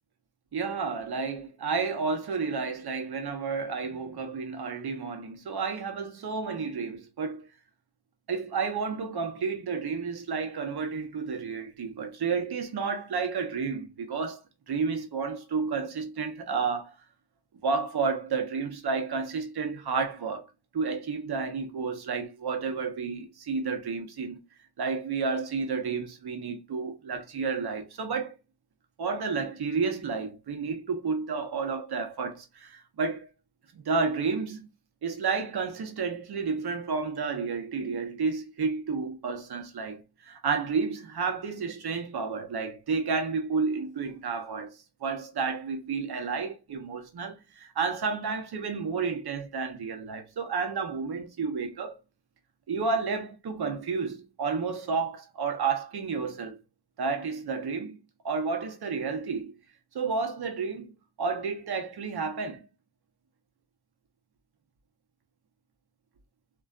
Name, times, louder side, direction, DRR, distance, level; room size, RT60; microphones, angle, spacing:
voice 1, 0.5-7.4 8.3-14.4 14.7-16.9 17.6-20.5 20.7-24.4 24.8-28.3 29.0-33.3 33.7-34.7 35.0-44.7 45.0-52.0 52.7-56.6 57.0-58.0 58.2-59.5 59.9-60.9 61.2-62.7, right 5 dB, 65° right, 0.8 m, -31 dB
2.4 x 2.2 x 2.4 m
cardioid pair, 50°, 43 cm